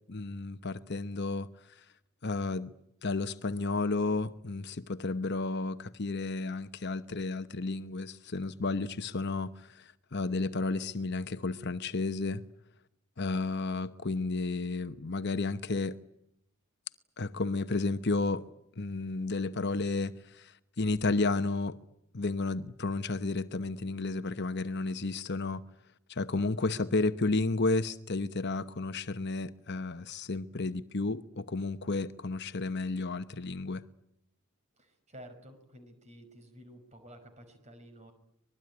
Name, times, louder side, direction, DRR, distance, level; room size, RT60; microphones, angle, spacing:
voice 1, 0.1-1.8 2.2-2.7 3.0-12.4 13.2-16.0 17.2-18.4 18.8-21.8 22.1-25.6 26.1-33.8, left 3 dB, 50° left, 1.0 m, -32 dB
voice 2, 34.8-38.1, equal, 30° right, 5.4 m, -52 dB
25.0 x 21.0 x 9.7 m
head